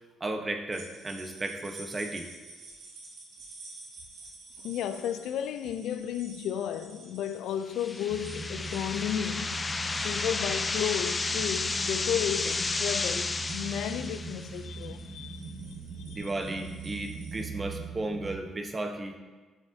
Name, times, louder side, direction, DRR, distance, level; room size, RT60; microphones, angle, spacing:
voice 1, 0.2-2.3 16.1-19.1, right 2 dB, 25° right, 1.1 m, -34 dB
sound 1, 0.7-17.4, right 2 dB, 90° right, 2.0 m, -51 dB
voice 2, 4.6-15.8 16.1-16.3, left 10 dB, 85° left, 0.4 m, -33 dB
sound 2, 7.7-14.7, left 3 dB, 25° left, 0.5 m, -32 dB
sound 3, 8.1-18.4, right 3 dB, 55° right, 1.1 m, -41 dB
11.5 x 7.0 x 2.8 m
cardioid pair, 90°, 0 cm